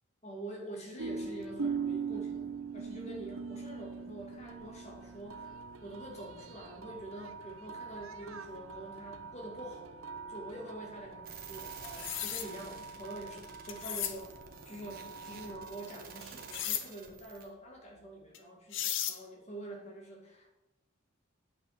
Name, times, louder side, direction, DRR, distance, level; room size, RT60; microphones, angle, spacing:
voice 1, 0.2-5.5 5.8-10.0 10.3-14.3 14.7-20.5, right 1 dB, 35° left, 0 dB, 2.1 m, -46 dB
sound 1, 1.0-16.6, right 5 dB, 90° right, 0.6 m, -42 dB
sound 2, 11.2-17.5, right 6 dB, 45° right, 1.2 m, -50 dB
sound 3, 11.8-12.5 13.7-14.2 16.5-16.8 18.3-18.4 18.7-19.2, left 11 dB, 65° left, 0.7 m, -35 dB
8.8 x 5.5 x 6.5 m, 0.97 s
head